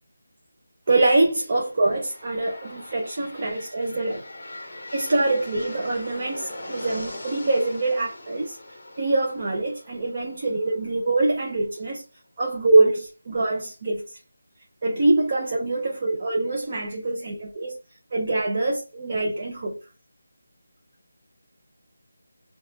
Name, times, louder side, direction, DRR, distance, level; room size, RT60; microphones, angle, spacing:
voice 1, 0.9-4.2 4.9-8.6 9.0-12.0 12.4-14.1 14.8-17.8 18.1-19.8, right 2 dB, 30° right, 0.5 m, -24 dB
sound 1, 1.7-11.5, left 1 dB, 35° left, 1.0 m, -41 dB
4.8 x 2.3 x 2.8 m
figure-of-eight pair, 175°, 0 cm